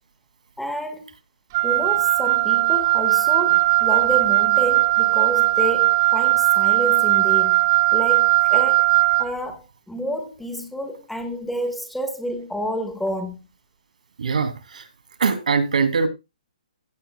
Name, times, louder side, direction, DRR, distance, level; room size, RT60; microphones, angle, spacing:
voice 1, 0.6-1.1 1.6-8.9 9.2-13.4, equal, ahead, 1.2 m, -29 dB
Wind instrument woodwind instrument, 1.5-9.3, right 19 dB, 25° right, 0.7 m, -18 dB
voice 2, 14.2-14.9 15.2-16.1, right 5 dB, 75° right, 2.8 m, -22 dB
16.5 x 9.1 x 2.3 m
hypercardioid pair, 170°, 4 cm